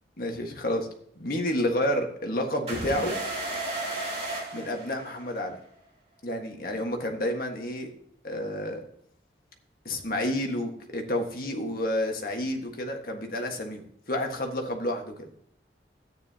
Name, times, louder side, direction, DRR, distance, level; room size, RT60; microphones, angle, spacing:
voice 1, 0.2-0.9 1.2-3.1 4.5-5.6 6.2-7.9 8.2-8.8 9.8-15.3, left 1 dB, 55° left, 3 dB, 1.5 m, -30 dB
sound 1, 2.7-5.5, right 1 dB, 35° right, 3.0 m, -33 dB
13.0 x 9.4 x 2.9 m, 0.64 s
head